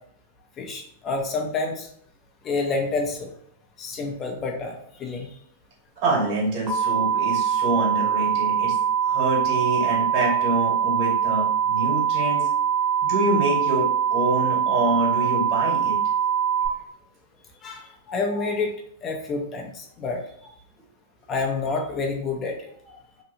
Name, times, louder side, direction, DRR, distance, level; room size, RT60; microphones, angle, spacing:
voice 1, 0.6-1.9 2.4-3.3 3.8-5.3 17.6-18.7 19.0-20.2 21.3-22.9, left 3 dB, 30° left, 1 dB, 0.6 m, -28 dB
voice 2, 6.0-8.7 9.0-12.4 13.1-15.9, right 2 dB, 55° right, -3 dB, 1.5 m, -26 dB
sound 1, 6.7-16.7, right 8 dB, 30° right, 0.7 m, -23 dB
2.8 x 2.3 x 2.7 m, 0.65 s
hypercardioid pair, 110°, 0 cm